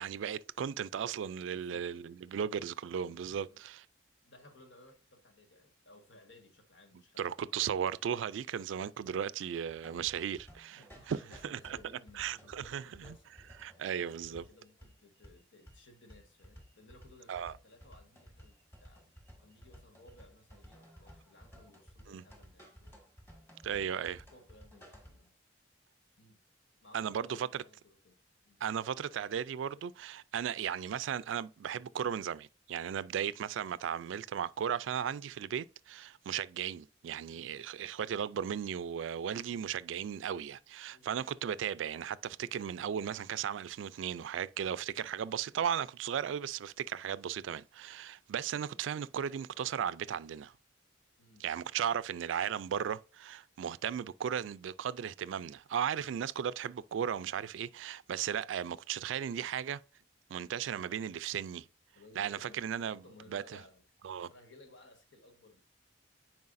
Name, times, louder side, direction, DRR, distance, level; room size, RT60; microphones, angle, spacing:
voice 1, 0.0-3.9 7.2-10.8 11.1-11.8 12.2-12.8 13.6-14.4 17.3-17.5 22.1-22.2 23.6-24.2 26.9-27.6 28.6-50.5 51.4-59.8 60.3-61.6 62.2-63.0 63.3-63.6 64.0-64.3, right 8 dB, 80° right, 0.3 m, -36 dB
voice 2, 1.5-1.9 3.0-3.6 4.2-7.7 10.7-19.1 19.4-23.0 24.3-25.3 26.2-26.4 26.8-28.1 28.4-28.6 37.3-37.6 40.9-41.1 51.2-51.4 61.9-63.8 64.3-65.8, left 2 dB, 85° left, 1.5 m, -59 dB
sound 1, 9.7-25.3, equal, 10° left, 1.8 m, -56 dB
9.5 x 4.6 x 2.5 m
head